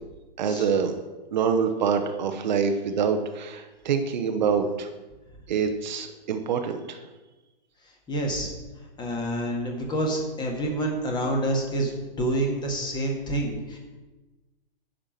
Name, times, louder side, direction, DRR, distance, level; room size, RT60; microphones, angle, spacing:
voice 1, 0.4-0.9 1.3-4.9 5.5-7.0, right 6 dB, 50° right, 6 dB, 1.0 m, -25 dB
voice 2, 8.1-8.5 9.0-11.9 12.2-13.8, right 1 dB, 15° left, 1 dB, 1.8 m, -27 dB
10.0 x 5.1 x 7.4 m, 1.2 s
figure-of-eight pair, 115°, 30 cm